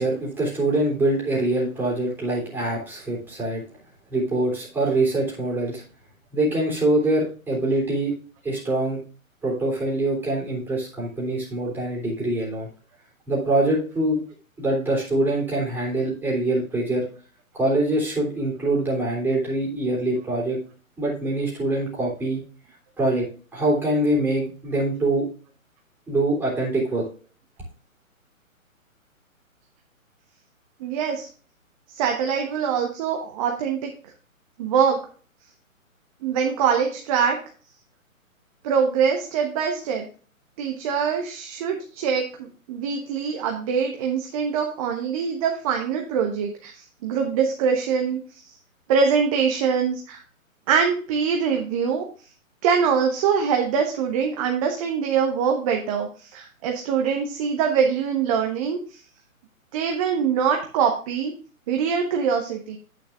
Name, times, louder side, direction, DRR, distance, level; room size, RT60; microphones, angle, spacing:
voice 1, 0.0-3.6 4.1-5.8 6.3-8.2 8.4-9.0 9.4-12.7 13.3-14.2 14.6-17.0 17.5-20.6 21.0-22.4 23.0-23.3 23.5-25.3 26.1-27.0, right 1 dB, 5° right, -5 dB, 3.3 m, -24 dB
voice 2, 30.8-31.3 31.9-33.9 34.6-35.0 36.2-37.4 38.6-40.1 40.6-48.4 48.9-50.2 50.7-52.0 52.6-59.0 59.7-61.3 61.7-62.8, right 6 dB, 25° right, 2 dB, 1.1 m, -23 dB
9.3 x 8.9 x 2.5 m, 0.39 s
figure-of-eight pair, 135°, 42 cm